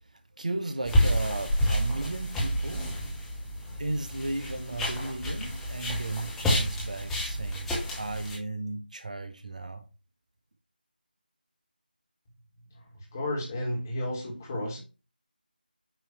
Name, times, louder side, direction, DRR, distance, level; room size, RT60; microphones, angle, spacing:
voice 1, 0.1-2.9 3.8-9.8, right 2 dB, 50° right, 0.9 m, -35 dB
sound 1, 0.8-8.4, equal, ahead, 0.7 m, -29 dB
voice 2, 13.1-14.8, left 1 dB, 20° left, 1.7 m, -32 dB
9.0 x 3.0 x 4.4 m
figure-of-eight pair, 165°, 5 cm